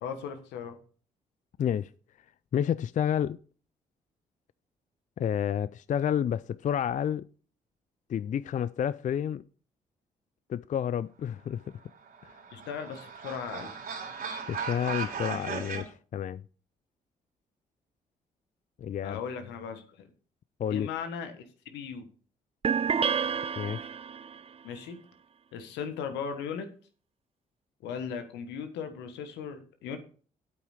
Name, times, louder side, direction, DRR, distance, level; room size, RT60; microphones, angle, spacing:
voice 1, 0.0-0.8 12.5-13.7 19.0-20.1 20.7-22.1 24.6-25.0 25.5-26.7 27.8-30.0, left 7 dB, 80° left, 1.3 m, -37 dB
voice 2, 1.6-1.9 2.5-3.4 5.2-7.2 8.1-9.4 10.5-11.6 12.2-12.4 14.5-16.4 18.8-19.2 20.6-20.9 23.6-23.9, left 9 dB, 45° left, 0.4 m, -30 dB
sound 1, 11.9-15.8, right 5 dB, 55° right, 3.4 m, -37 dB
sound 2, 22.6-24.4, right 6 dB, 35° right, 0.5 m, -29 dB
8.6 x 8.5 x 4.9 m
hypercardioid pair, 45°, 18 cm